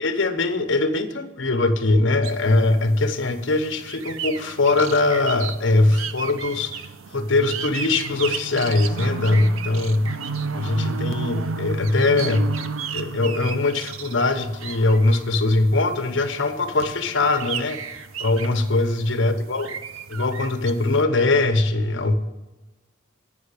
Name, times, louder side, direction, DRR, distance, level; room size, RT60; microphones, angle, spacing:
voice 1, 0.0-6.8 7.1-10.1 10.5-12.5 12.9-17.8 18.2-19.7 20.1-22.2, left 2 dB, 60° left, 7 dB, 0.9 m, -21 dB
sound 1, 2.2-21.0, right 5 dB, 75° right, 0.6 m, -34 dB
9.4 x 5.5 x 8.3 m, 1.1 s
head